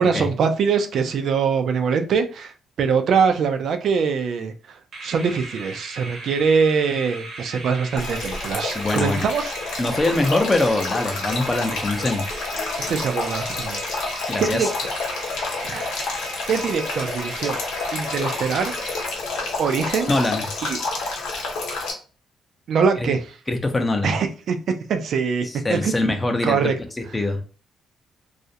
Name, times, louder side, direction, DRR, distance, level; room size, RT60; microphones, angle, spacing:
voice 1, 0.0-2.5 2.8-4.8 5.0-9.6 12.9-13.8 14.4-14.7 15.7-15.9 16.5-17.6 17.9-18.7 19.6-20.1 20.6-20.8 22.7-23.3 24.0-24.6 24.9-25.9 26.4-26.7, right 6 dB, 65° right, 7 dB, 0.3 m, -23 dB
sound 1, 4.9-19.6, right 2 dB, 45° right, 0.7 m, -37 dB
Male speech man speaking / Stream / Trickle dribble, 8.0-21.9, left 3 dB, 85° left, 0.8 m, -29 dB
voice 2, 8.7-9.2 9.8-12.3 14.3-14.7 20.1-20.5 23.0-23.1 23.5-24.1 25.4-27.4, left 2 dB, 20° left, 5 dB, 0.5 m, -23 dB
2.4 x 2.0 x 2.7 m, 0.36 s
cardioid pair, 90°, 0 cm